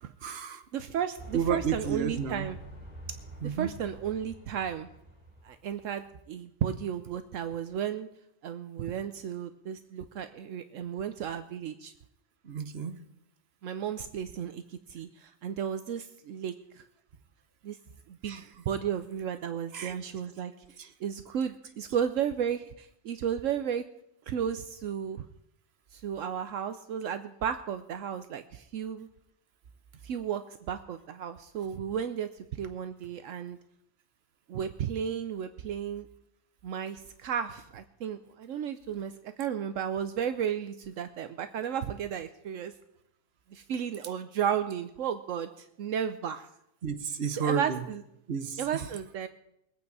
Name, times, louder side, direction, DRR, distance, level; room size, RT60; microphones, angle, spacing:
voice 1, 0.2-0.6 1.3-2.5 3.4-3.7 12.4-13.0 18.3-18.4 19.7-19.9 20.8-20.9 46.8-47.8 48.3-48.9, right 7 dB, 55° right, 8 dB, 1.2 m, -31 dB
voice 2, 0.7-2.6 3.4-4.9 5.4-8.1 8.4-11.9 13.6-16.8 17.6-17.8 18.1-20.5 21.0-23.8 24.3-25.2 25.9-29.1 30.0-33.6 34.5-36.1 36.6-39.1 39.4-42.7 43.5-46.5 47.4-48.0 48.6-49.3, right 8 dB, 75° right, 9 dB, 1.0 m, -34 dB
sound 1, 1.2-5.9, right 1 dB, 30° right, 4.9 m, -46 dB
22.0 x 8.7 x 4.7 m, 0.79 s
omnidirectional pair, 1.4 m